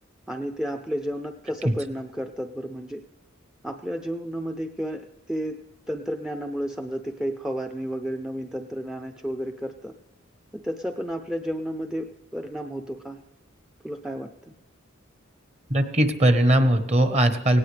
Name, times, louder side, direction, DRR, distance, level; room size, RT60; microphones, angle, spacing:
voice 1, 0.3-3.0 3.6-5.6 5.9-9.9 10.5-12.1 12.3-13.2 13.8-14.3, equal, 5° right, 6 dB, 0.5 m, -32 dB
voice 2, 15.7-17.6, right 1 dB, 35° right, 9 dB, 1.1 m, -20 dB
18.0 x 17.5 x 3.3 m, 0.91 s
head